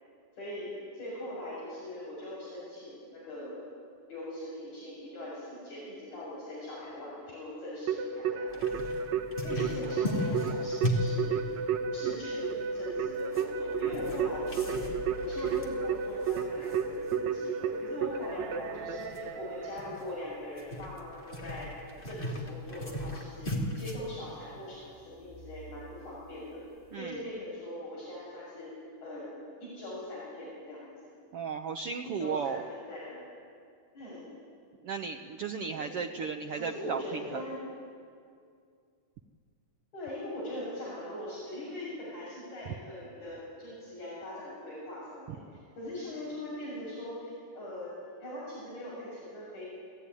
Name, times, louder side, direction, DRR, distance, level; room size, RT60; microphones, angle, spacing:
voice 1, 0.4-3.7 4.1-8.8 9.4-11.5 11.8-21.7 22.0-26.6 26.9-28.7 29.0-29.3 29.6-30.9 32.0-33.2 33.9-34.2 35.7-37.6 39.9-45.4 45.8-47.9 48.2-49.7, left 1 dB, 60° left, -6 dB, 8.0 m, -41 dB
Keyboard (musical), 7.9-20.3, right 5 dB, 65° right, 2.2 m, -32 dB
sound 1, 8.5-26.9, equal, 15° left, 2.8 m, -39 dB
voice 2, 26.9-27.2 31.3-32.6 34.8-37.4, right 6 dB, 80° right, 5 dB, 1.3 m, -35 dB
29.5 x 18.5 x 9.8 m, 2.3 s
omnidirectional pair, 3.8 m